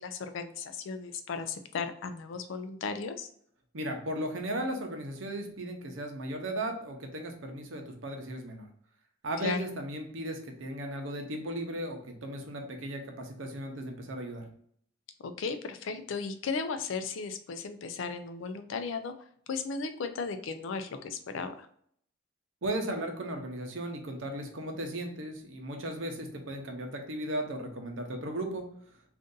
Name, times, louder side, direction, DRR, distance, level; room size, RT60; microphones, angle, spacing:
voice 1, 0.0-3.3 9.4-9.6 15.2-19.1 19.5-21.7, left 5 dB, 85° left, 9 dB, 0.4 m, -35 dB
voice 2, 3.7-8.7 9.2-14.5 22.6-28.7, right 1 dB, 85° right, 3 dB, 0.7 m, -36 dB
2.6 x 2.5 x 3.7 m, 0.63 s
head